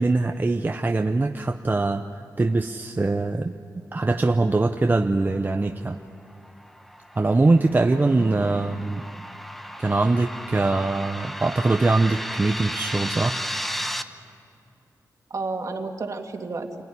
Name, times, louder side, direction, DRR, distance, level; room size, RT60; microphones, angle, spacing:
voice 1, 0.0-3.5 3.9-6.0 7.2-9.0 9.8-13.4, right 2 dB, 30° right, 5 dB, 0.8 m, -22 dB
sound 1, 6.3-14.0, equal, 5° left, 1.0 m, -34 dB
voice 2, 7.9-8.6 15.3-16.7, right 3 dB, 50° right, 2 dB, 2.4 m, -32 dB
27.5 x 17.5 x 10.0 m, 2.6 s
wide cardioid pair, 90°, 7 cm